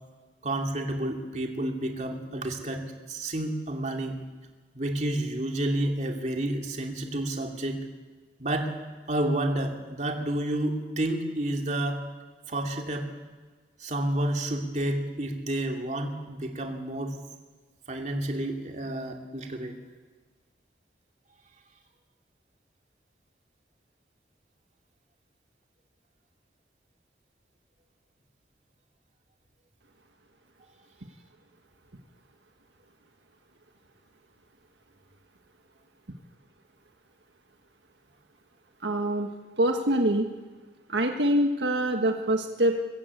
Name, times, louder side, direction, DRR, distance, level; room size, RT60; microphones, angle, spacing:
voice 1, 0.4-4.2 4.7-7.8 8.4-8.7 9.1-12.0 12.5-13.1 13.8-17.2 17.9-19.8, right 1 dB, 40° right, 2 dB, 2.8 m, -30 dB
voice 2, 38.8-39.3 39.6-40.3 40.9-42.8, right 1 dB, 80° right, 4 dB, 1.5 m, -24 dB
22.5 x 15.0 x 8.5 m, 1.4 s
head